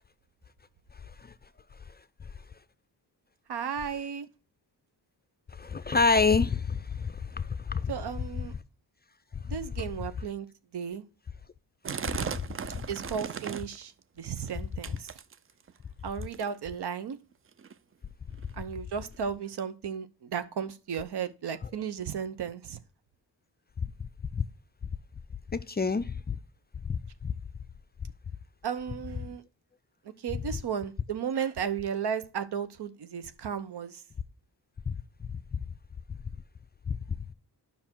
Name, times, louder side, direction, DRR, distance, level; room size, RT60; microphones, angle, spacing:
voice 1, 3.5-4.3 7.9-8.5 9.5-10.5 10.7-11.0 12.9-13.9 14.2-15.1 16.0-17.2 18.6-22.8 28.6-29.4 30.2-34.0, right 7 dB, 70° right, 0.9 m, -34 dB
voice 2, 5.5-7.9 9.3-9.6 11.9-12.0 21.6-21.7 23.8-23.9 24.3-24.4 25.5-26.4 26.8-27.3 34.9-35.0 35.3-35.4 36.9-37.2, left 4 dB, 25° left, 0.5 m, -28 dB
sound 1, 11.8-13.8 14.2-14.5 14.8-15.7 16.2-16.6 17.3-17.4 17.6-17.7 18.3-18.4 19.1-19.2, right 7 dB, 35° right, 0.4 m, -37 dB
9.7 x 5.9 x 4.5 m
cardioid pair, 85°, 41 cm